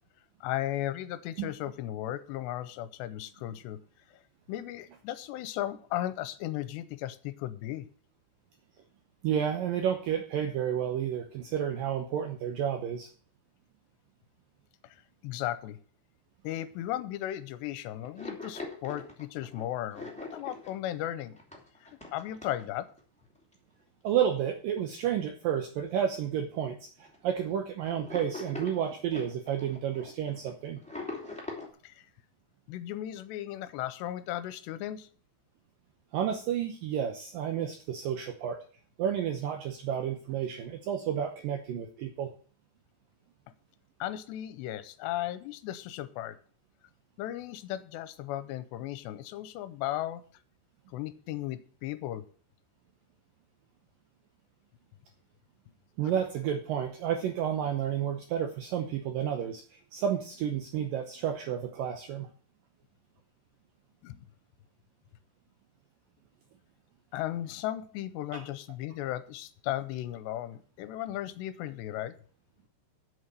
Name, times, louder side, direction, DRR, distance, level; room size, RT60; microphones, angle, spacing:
voice 1, 0.4-3.8 4.1-4.2 4.5-7.9 14.9-15.8 16.4-21.4 21.8-22.9 31.8-31.9 32.7-35.1 44.0-46.4 47.2-50.2 50.9-52.3 64.0-64.2 67.1-72.2, left 13 dB, 85° left, 13 dB, 2.8 m, -36 dB
voice 2, 9.2-13.1 24.0-30.8 36.1-38.6 39.0-42.3 56.0-62.3 68.3-68.4, right 9 dB, 75° right, 5 dB, 2.0 m, -31 dB
sound 1, 18.0-23.0 23.3-23.5 24.3-24.4 24.8-24.9 25.3-25.8 26.1-26.2 26.4-26.6 27.0-27.4 27.9-31.7, left 3 dB, 5° left, 1.0 m, -42 dB
8.0 x 7.8 x 6.8 m, 0.43 s
omnidirectional pair, 5.0 m